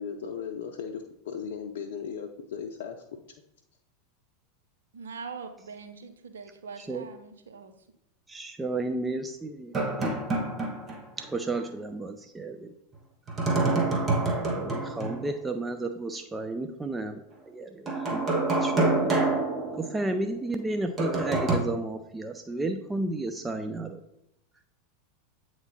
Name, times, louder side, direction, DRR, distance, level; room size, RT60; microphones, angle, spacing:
voice 1, 0.0-3.2, left 7 dB, 65° left, 3 dB, 0.5 m, -37 dB
voice 2, 4.9-7.7, right 5 dB, 80° right, 7 dB, 0.7 m, -42 dB
voice 3, 6.8-7.1 8.3-10.2 11.2-12.7 13.6-13.7 14.5-19.1 19.8-24.0, right 2 dB, 10° right, 6 dB, 0.5 m, -33 dB
sound 1, 9.7-11.2 11.5-11.6 13.3-15.3 17.9-20.3 21.0-21.6, right 2 dB, 30° right, 1.3 m, -27 dB
8.2 x 3.1 x 4.1 m, 0.79 s
hypercardioid pair, 90°, 0 cm